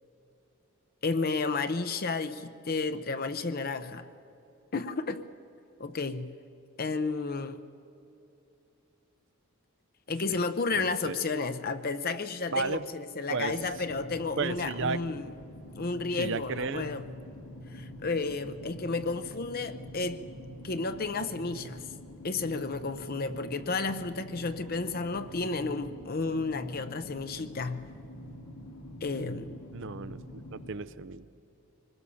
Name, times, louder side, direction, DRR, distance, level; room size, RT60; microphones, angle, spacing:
voice 1, 1.0-4.1 4.7-5.3 5.8-6.3 6.8-7.6 10.1-15.3 15.8-17.1 17.7-20.2 20.6-21.8 22.2-27.8 29.0-29.6, left 3 dB, 45° left, 0.7 m, -32 dB
voice 2, 10.7-11.2 12.5-12.8 13.3-13.6 14.4-15.0 16.2-16.9 29.7-31.3, right 4 dB, 60° right, 0.6 m, -33 dB
sound 1, 13.5-30.7, left 1 dB, 80° left, 2.1 m, -45 dB
25.0 x 20.5 x 7.1 m
head